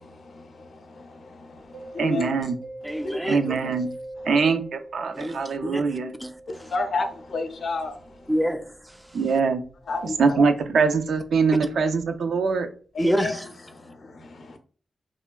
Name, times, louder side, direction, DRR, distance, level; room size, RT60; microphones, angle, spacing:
Mallet percussion, 1.7-11.3, right 1 dB, 60° right, 1.1 m, -43 dB
voice 1, 2.0-2.6 3.3-3.9 4.3-6.1 9.1-9.6 10.2-12.7, right 5 dB, 80° right, 0.3 m, -23 dB
voice 2, 2.8-3.4 5.1-6.4 8.3-8.7 13.0-13.4, equal, 5° right, 0.4 m, -27 dB
voice 3, 6.7-7.9 9.9-10.0 10.3-10.4 13.0-13.5, left 3 dB, 70° left, 0.5 m, -28 dB
3.0 x 2.3 x 2.2 m
cardioid pair, 50°, 0 cm